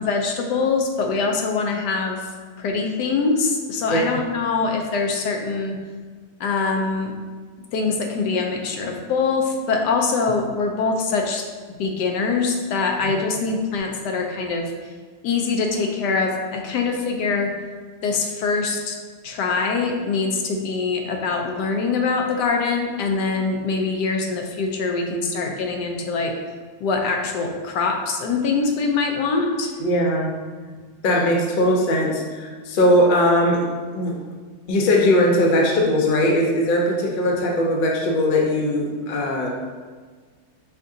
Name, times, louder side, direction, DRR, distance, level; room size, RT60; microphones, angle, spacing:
voice 1, 0.0-2.2 2.6-5.8 6.4-7.1 7.7-11.4 11.8-14.7 15.2-17.5 18.0-19.0 19.2-26.3 26.8-29.7, left 4 dB, 90° left, 2 dB, 1.2 m, -23 dB
voice 2, 29.8-30.3 31.0-33.6 33.9-34.2 34.7-39.5, left 1 dB, 70° left, -1 dB, 0.4 m, -19 dB
4.5 x 3.7 x 2.6 m, 1.5 s
omnidirectional pair, 1.7 m